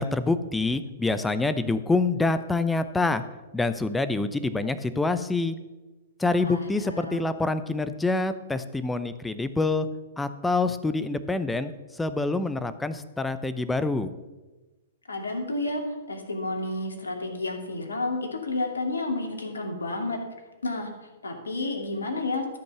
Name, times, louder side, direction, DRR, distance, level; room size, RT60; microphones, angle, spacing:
voice 1, 0.0-3.2 3.5-5.6 6.2-9.9 10.2-14.1, left 3 dB, 5° left, 12 dB, 0.7 m, -26 dB
voice 2, 6.4-7.3 15.1-20.2 20.6-22.6, left 2 dB, 80° left, 2 dB, 2.4 m, -31 dB
13.5 x 5.4 x 6.9 m, 1.1 s
figure-of-eight pair, 115°, 0 cm